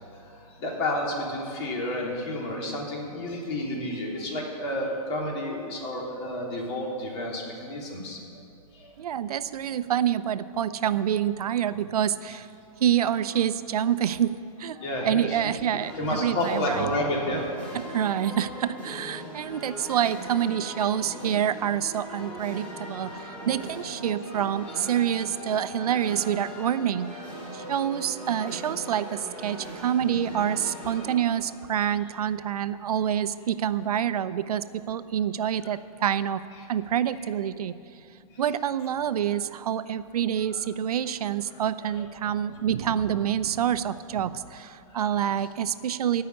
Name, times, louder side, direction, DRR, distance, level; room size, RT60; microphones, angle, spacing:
voice 1, 0.6-8.2 14.8-15.5 16.0-17.4 23.1-23.3 24.7-24.8 35.5-35.6 42.0-42.1 44.9-45.1 45.4-45.5, left 1 dB, 45° left, -2 dB, 3.5 m, -30 dB
voice 2, 9.0-12.5 12.8-16.9 17.7-27.3 27.5-36.4 36.7-37.7 38.4-46.2, right 9 dB, 80° right, 13 dB, 0.7 m, -27 dB
sound 1, 15.8-32.3, equal, 5° left, 3.3 m, -40 dB
15.5 x 5.8 x 9.6 m, 2.6 s
hypercardioid pair, 155°, 19 cm